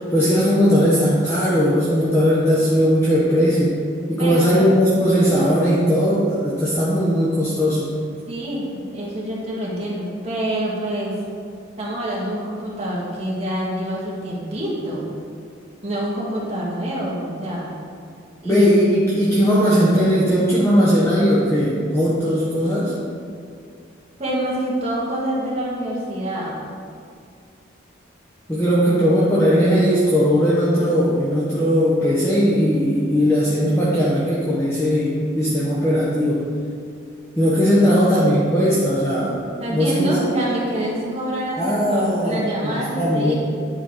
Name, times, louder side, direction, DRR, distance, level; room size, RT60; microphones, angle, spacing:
voice 1, 0.1-3.8 4.1-7.9 18.4-22.9 28.5-36.4 37.4-39.4 39.7-40.2 41.6-43.3, equal, 15° left, -8 dB, 0.9 m, -18 dB
voice 2, 4.2-4.7 8.3-11.2 11.8-15.1 15.8-17.7 18.4-18.7 24.2-26.7 39.6-43.3, right 1 dB, 30° right, -6 dB, 1.7 m, -26 dB
9.7 x 4.7 x 3.7 m, 2.3 s
head